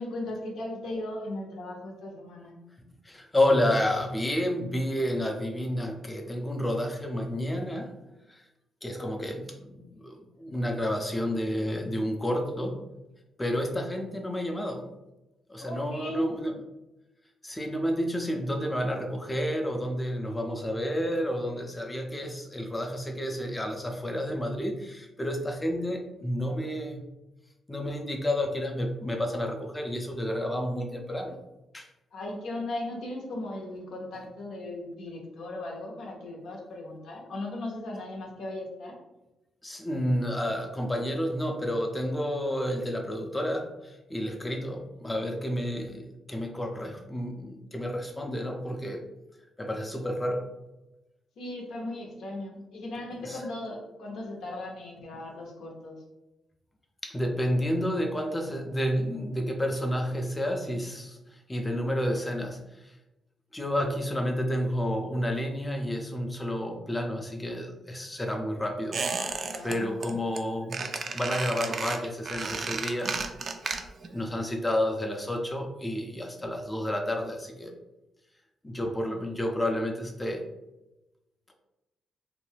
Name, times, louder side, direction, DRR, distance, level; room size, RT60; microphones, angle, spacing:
voice 1, 0.0-2.6 15.6-16.3 32.1-38.9 51.4-56.0 69.5-69.9, left 2 dB, 80° left, 0 dB, 0.6 m, -37 dB
voice 2, 3.0-7.9 8.3-8.4 8.8-12.8 13.4-14.8 15.5-16.6 17.4-27.1 27.7-31.4 31.7-31.9 39.6-49.0 49.6-50.5 53.2-53.4 57.0-61.2 61.5-62.6 63.5-69.0 69.4-70.8 71.1-73.2 74.1-77.7 78.6-80.4, equal, 15° left, 3 dB, 0.4 m, -30 dB
Squeak, 68.9-69.7 70.0-70.4 70.7-74.1 74.4-74.5, right 4 dB, 55° right, 0.3 m, -33 dB
2.5 x 2.2 x 3.2 m, 0.97 s
cardioid pair, 75°, 0 cm